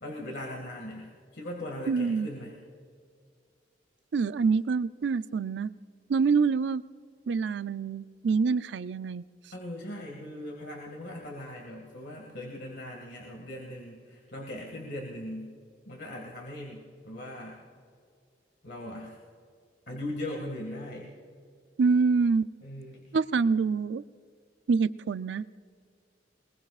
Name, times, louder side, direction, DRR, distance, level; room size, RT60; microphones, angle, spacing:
voice 1, 0.0-2.6 9.5-15.5 15.9-17.6 18.6-19.1 19.9-21.1 22.6-23.2, left 1 dB, 65° left, -1 dB, 2.0 m, -39 dB
voice 2, 1.9-2.3 4.1-5.7 6.1-6.8 7.3-9.2 21.8-22.5 23.1-24.0 24.7-25.4, right 5 dB, 75° right, 15 dB, 0.4 m, -26 dB
22.5 x 21.0 x 2.4 m, 2.2 s
head